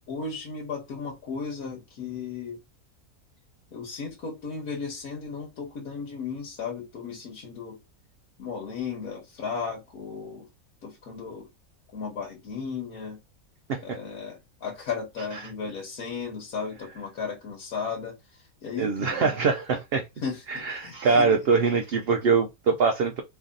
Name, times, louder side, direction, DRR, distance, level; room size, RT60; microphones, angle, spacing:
voice 1, 0.0-2.6 3.7-7.8 8.4-10.5 10.8-11.5 11.9-13.2 13.8-18.2 18.6-19.3 20.2-20.4 20.7-21.3, left 5 dB, 85° left, 1.6 m, -35 dB
voice 2, 18.8-20.0 20.5-23.2, right 5 dB, 65° right, 0.6 m, -23 dB
3.2 x 2.6 x 3.8 m
omnidirectional pair, 1.5 m